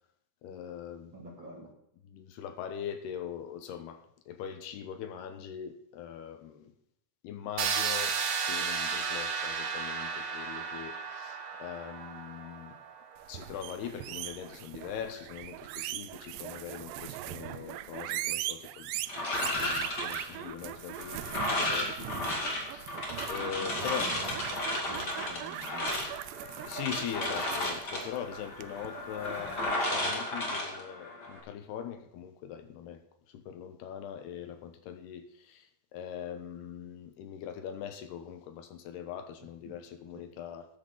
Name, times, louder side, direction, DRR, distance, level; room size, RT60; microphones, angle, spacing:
voice 1, 0.4-1.1 2.1-6.7 7.2-12.8 13.3-18.9 19.2-22.3 22.7-24.1 26.7-33.0 33.3-40.7, left 9 dB, 80° left, 7 dB, 3.1 m, -41 dB
voice 2, 1.1-1.7 22.0-22.3 23.4-26.1 26.5-26.9 39.7-39.8 40.1-40.2, right 2 dB, 35° right, -2 dB, 2.5 m, -47 dB
sound 1, 7.6-13.4, right 6 dB, 65° right, 2.6 m, -34 dB
sound 2, 13.2-29.7, right 15 dB, 90° right, 2.7 m, -40 dB
sound 3, 19.1-31.4, left 1 dB, 30° left, 2.2 m, -34 dB
13.0 x 10.5 x 3.9 m, 0.74 s
omnidirectional pair, 4.7 m